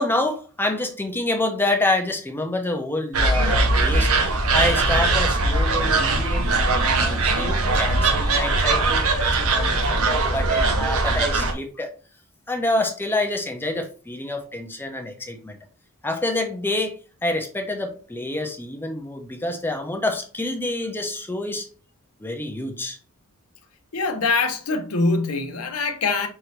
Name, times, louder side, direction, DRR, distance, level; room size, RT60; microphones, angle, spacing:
voice 1, 0.0-6.5 6.8-11.9 12.5-15.6 16.0-21.7 22.2-23.0, left 2 dB, 10° left, 0.6 m, -27 dB
sound 1, 3.1-11.5, right 2 dB, 80° right, 0.8 m, -20 dB
voice 2, 23.9-26.3, left 3 dB, 90° left, 0.7 m, -23 dB
5.8 x 2.7 x 3.2 m
head